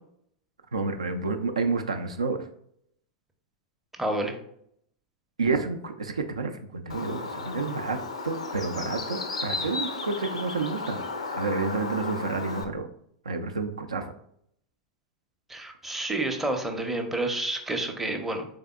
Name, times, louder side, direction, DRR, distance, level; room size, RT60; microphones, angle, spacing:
voice 1, 0.7-2.5 5.4-8.0 8.2-11.0 11.3-12.9 13.3-14.1, right 4 dB, 75° right, 6 dB, 0.3 m, -29 dB
voice 2, 4.0-4.3 15.5-18.5, right 2 dB, 5° right, 3 dB, 0.5 m, -29 dB
Bird, 6.9-12.6, left 3 dB, 75° left, 0.4 m, -34 dB
3.6 x 3.3 x 2.3 m, 0.69 s
figure-of-eight pair, 90°, 3 cm